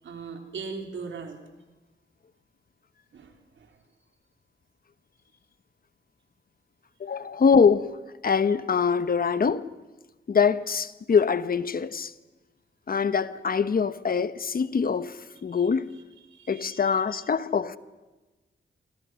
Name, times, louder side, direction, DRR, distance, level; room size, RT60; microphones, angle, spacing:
voice 1, 0.0-1.4 3.1-3.8 15.5-15.7 16.3-17.0, right 5 dB, 85° right, 3.8 m, -40 dB
voice 2, 7.0-7.9 8.2-9.7 10.3-12.1 12.9-15.9 16.5-17.8, left 6 dB, 50° left, 1.1 m, -24 dB
28.0 x 25.0 x 6.3 m
wide cardioid pair, 115°, 19 cm